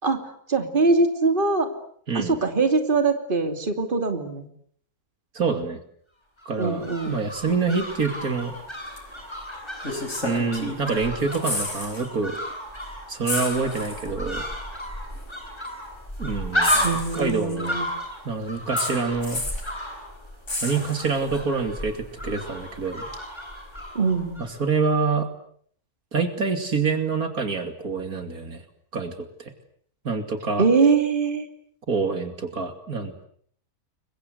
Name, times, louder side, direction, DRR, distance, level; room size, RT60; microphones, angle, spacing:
voice 1, 0.5-1.7 2.1-4.5 6.6-7.2 16.8-17.9 23.9-24.4 30.6-31.5, right 4 dB, 35° right, 6 dB, 3.0 m, -22 dB
voice 2, 2.1-2.4 5.3-5.8 6.5-8.5 9.9-12.4 13.1-14.4 16.2-17.8 18.2-19.4 20.6-23.1 24.6-25.3 26.1-28.6 28.9-29.1 29.4-29.5 30.0-30.6 31.9-33.2, right 4 dB, 70° right, 7 dB, 3.1 m, -26 dB
sound 1, 6.4-24.6 24.8-24.9, equal, 15° left, 7.1 m, -33 dB
sound 2, 9.0-9.1 9.8-10.9 11.2-12.1 12.4-12.5 13.2-14.1 15.1-15.2 16.6-17.7 18.8-19.7 20.5-21.4 23.1-23.2, left 2 dB, 50° left, 5.4 m, -31 dB
30.0 x 23.0 x 8.0 m, 0.62 s
omnidirectional pair, 1.6 m